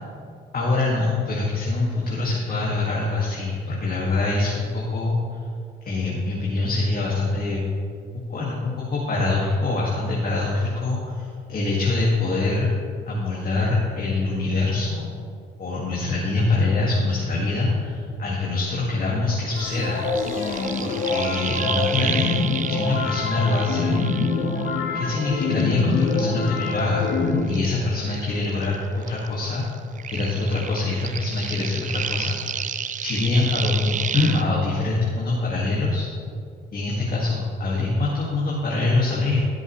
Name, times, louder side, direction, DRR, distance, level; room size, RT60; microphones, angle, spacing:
voice 1, 0.5-5.4 5.8-7.6 8.3-12.7 13.1-15.1 15.6-20.0 20.8-22.4 22.7-24.0 24.9-27.1 27.5-29.6 30.1-32.7 33.0-36.1 36.7-39.4, left 3 dB, 45° left, -5 dB, 2.1 m, -24 dB
sound 1, 19.5-25.1 25.4-28.8 29.0-34.4, right 8 dB, 40° right, 0.5 m, -32 dB
sound 2, 19.6-27.4, left 4 dB, 80° left, 1.4 m, -25 dB
15.5 x 7.6 x 3.2 m, 2.2 s
cardioid pair, 90°, 20 cm